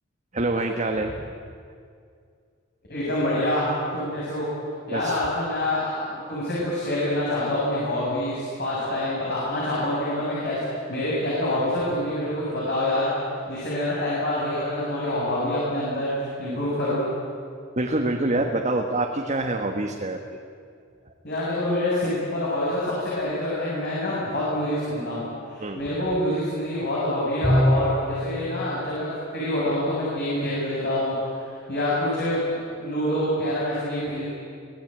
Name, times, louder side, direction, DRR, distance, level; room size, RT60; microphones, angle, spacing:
voice 1, 0.3-1.2 4.9-5.2 17.8-20.2 25.6-25.8, right 2 dB, 35° right, 2 dB, 1.5 m, -26 dB
voice 2, 2.9-3.7 3.9-4.5 4.9-10.6 10.9-13.1 13.5-17.1 21.2-25.2 25.5-31.1 31.5-34.3, left 1 dB, 55° left, -7 dB, 6.9 m, -26 dB
Bowed string instrument, 27.4-28.3, equal, 5° right, 4.0 m, -21 dB
25.0 x 17.0 x 8.9 m, 2.3 s
head